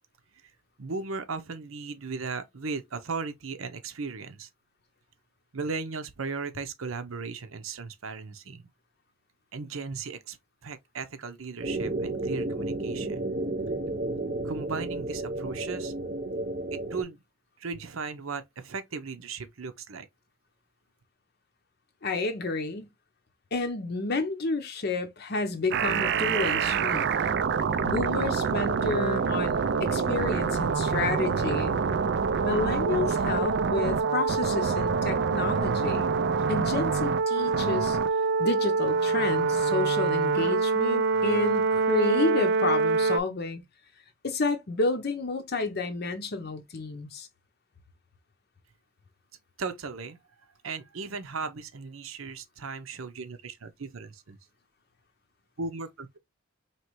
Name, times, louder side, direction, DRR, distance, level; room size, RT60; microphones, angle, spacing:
voice 1, 0.8-4.5 5.5-8.6 9.5-10.4 10.6-13.3 14.4-15.9 16.7-17.2 17.6-20.1 49.6-50.2 50.6-54.4 55.6-56.2, right 4 dB, 70° right, 0.7 m, -36 dB
sound 1, 11.6-17.0, right 2 dB, 40° right, 0.8 m, -32 dB
voice 2, 22.0-22.9 23.5-27.1 27.8-31.8 32.4-36.1 36.5-38.0 38.4-43.6 44.2-47.3, left 3 dB, 50° left, 0.7 m, -30 dB
sound 2, 25.7-43.2, right 5 dB, 55° right, 0.4 m, -25 dB
4.4 x 3.1 x 3.0 m
head